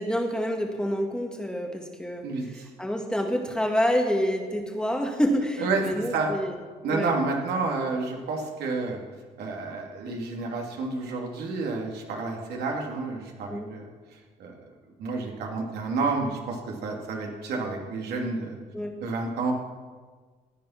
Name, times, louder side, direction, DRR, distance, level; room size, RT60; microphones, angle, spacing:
voice 1, 0.0-2.3 2.8-6.6 6.9-7.1 13.5-13.7 18.7-18.9, equal, 5° left, 2 dB, 1.8 m, -27 dB
voice 2, 2.2-2.7 5.6-6.3 6.8-9.0 9.4-14.7 15.0-18.6 19.0-19.5, right 3 dB, 75° right, 0 dB, 2.9 m, -30 dB
15.5 x 9.2 x 5.9 m, 1.5 s
cardioid pair, 110°, 17 cm